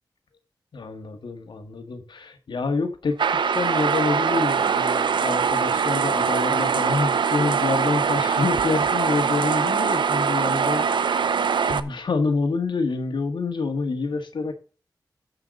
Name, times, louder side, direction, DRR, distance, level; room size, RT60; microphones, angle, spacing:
voice 1, 0.7-14.5, left 4 dB, 80° left, 1.7 m, -27 dB
sound 1, 3.2-11.8, right 6 dB, 80° right, 0.6 m, -22 dB
13.5 x 5.8 x 3.8 m
cardioid pair, 60°, 8 cm